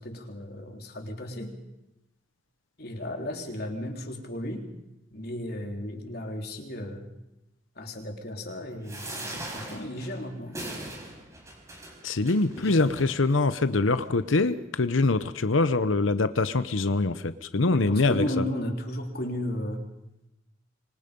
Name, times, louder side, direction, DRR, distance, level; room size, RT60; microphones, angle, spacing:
voice 1, 0.0-1.6 2.8-4.7 5.1-7.1 7.8-10.6 12.5-12.9 17.7-19.9, left 1 dB, 50° left, 2 dB, 3.8 m, -34 dB
sound 1, 8.8-13.4 14.0-14.2 14.4-14.5, right 1 dB, 15° right, 5.1 m, -41 dB
voice 2, 12.0-18.4, left 3 dB, 85° left, 12 dB, 0.9 m, -24 dB
25.5 x 25.0 x 5.4 m, 0.90 s
head